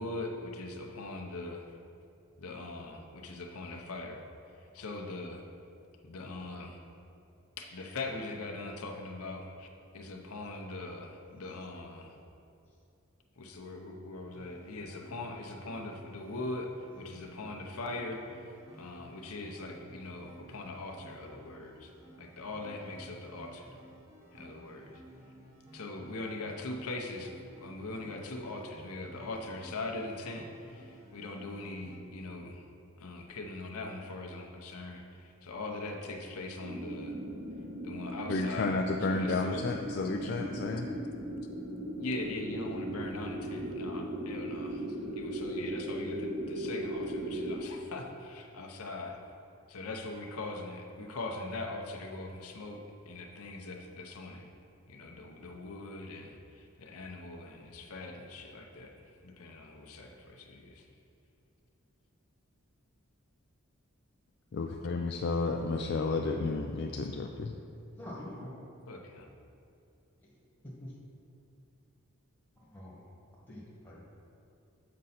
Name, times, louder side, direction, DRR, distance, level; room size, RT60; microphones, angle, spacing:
voice 1, 0.0-1.8 2.4-4.2 4.5-5.4 6.0-6.8 7.6-9.7 9.9-12.2 13.4-21.9 22.2-23.7 24.3-25.0 25.7-32.7 33.0-37.2 37.8-39.8 40.2-40.5 42.0-49.2 49.7-54.5 54.9-60.9 68.9-69.3, left 2 dB, 85° left, 1 dB, 0.7 m, -41 dB
sound 1, 14.3-32.0, right 1 dB, 15° right, 0.9 m, -55 dB
sound 2, 36.6-47.6, right 1 dB, 55° right, 1.0 m, -38 dB
voice 2, 38.3-40.9 64.5-67.6, left 3 dB, 50° left, 2 dB, 0.3 m, -32 dB
voice 3, 68.0-68.5 70.2-70.3 70.6-70.9 72.6-73.0 73.5-74.0, left 1 dB, 10° left, -6 dB, 1.5 m, -45 dB
7.6 x 5.3 x 4.2 m, 2.7 s
head